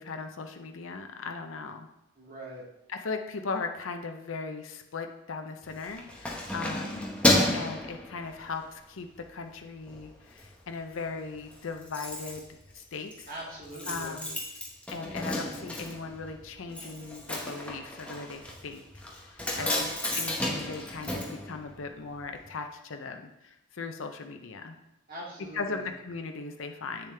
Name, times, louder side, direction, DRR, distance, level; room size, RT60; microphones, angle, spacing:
voice 1, 0.0-1.9 2.9-7.1 7.5-13.3 13.9-14.4 14.9-18.8 19.2-19.9 20.1-24.8 25.5-27.1, left 4 dB, 70° left, 5 dB, 0.6 m, -38 dB
voice 2, 2.2-2.6 13.3-14.1 19.4-19.8 25.1-25.9, right 1 dB, 45° right, -6 dB, 2.3 m, -41 dB
Keys jangling, 5.6-8.7 9.2-9.4 9.8-10.5 10.7-10.8 11.1-11.2 11.4-22.2 22.4-22.5, left 1 dB, 5° left, 0.9 m, -32 dB
8.2 x 6.8 x 3.3 m, 0.88 s
head